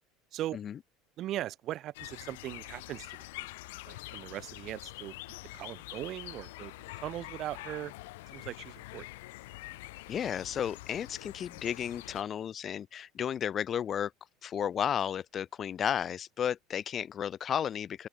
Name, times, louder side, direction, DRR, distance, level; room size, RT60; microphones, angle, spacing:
voice 1, 1.2-3.5 3.9-5.2 5.5-7.9 8.3-9.1, right 13 dB, 35° right, 1.9 m, -39 dB
sound 1, 1.9-12.2, left 21 dB, 90° left, 0.5 m, -46 dB
voice 2, 10.1-14.1 14.4-18.1, left 9 dB, 25° left, 0.8 m, -33 dB
open air
cardioid pair, 175°, 0 cm